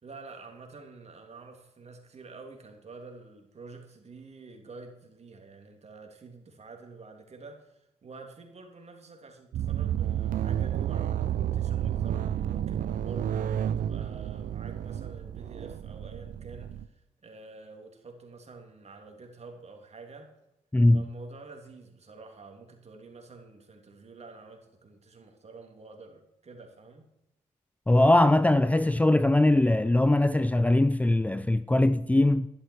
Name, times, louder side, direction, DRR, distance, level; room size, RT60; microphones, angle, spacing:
voice 1, 0.0-20.3 20.9-27.1, right 3 dB, 45° right, 3.1 m, -48 dB
sound 1, 9.5-16.9, right 10 dB, 65° right, 0.6 m, -31 dB
voice 2, 20.7-21.1 27.9-32.5, left 1 dB, 10° left, 0.5 m, -21 dB
11.5 x 11.0 x 4.7 m
supercardioid pair, 50°, 15 cm